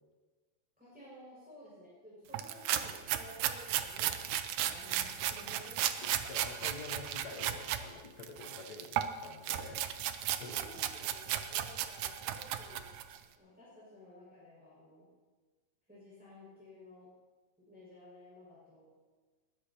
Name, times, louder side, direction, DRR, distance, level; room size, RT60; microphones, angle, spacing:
voice 1, 0.8-5.8 10.4-12.9 13.4-15.1 15.9-17.1 17.6-19.0, left 1 dB, 5° right, -9 dB, 5.5 m, -54 dB
sound 1, 2.3-7.8 8.2-13.2, right 11 dB, 85° right, 2.2 m, -35 dB
voice 2, 6.3-10.6, left 4 dB, 80° left, 4 dB, 0.9 m, -48 dB
21.0 x 15.0 x 2.9 m, 1.4 s
omnidirectional pair, 3.4 m